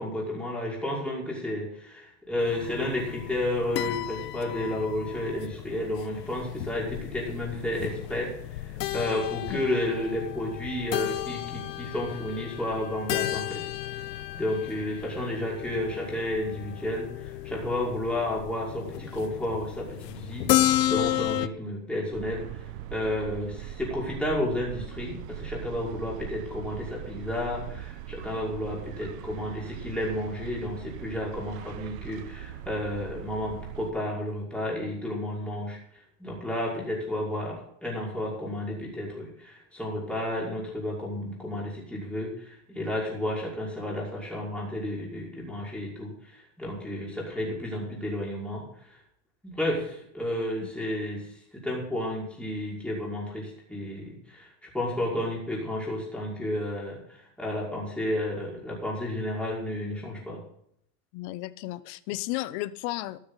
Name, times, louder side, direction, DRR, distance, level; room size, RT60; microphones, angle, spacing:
voice 1, 0.0-13.6 14.3-35.8 36.2-49.0 49.4-60.4, left 1 dB, ahead, 5.5 m, -32 dB
sound 1, 2.4-21.5, left 14 dB, 90° left, 0.8 m, -33 dB
sound 2, 22.1-33.9, right 11 dB, 55° right, 1.0 m, -41 dB
voice 2, 61.1-63.2, left 17 dB, 45° left, 0.9 m, -34 dB
13.5 x 12.5 x 4.1 m
hypercardioid pair, 125°, 47 cm